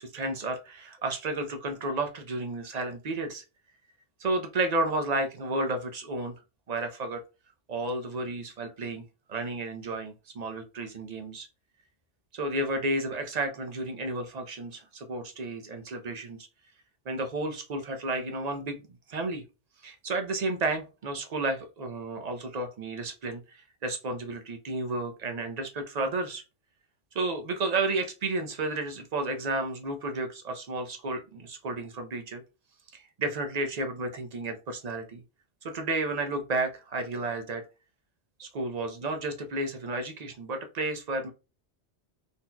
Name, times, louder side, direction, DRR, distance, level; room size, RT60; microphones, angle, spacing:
voice 1, 0.0-3.4 4.2-6.3 6.7-7.2 7.7-11.5 12.3-16.5 17.1-18.8 19.1-19.4 19.8-26.4 27.1-32.4 32.9-35.2 35.6-37.6 38.4-41.3, right 2 dB, 50° right, 5 dB, 0.6 m, -32 dB
4.0 x 2.8 x 2.2 m, 0.30 s
omnidirectional pair, 1.1 m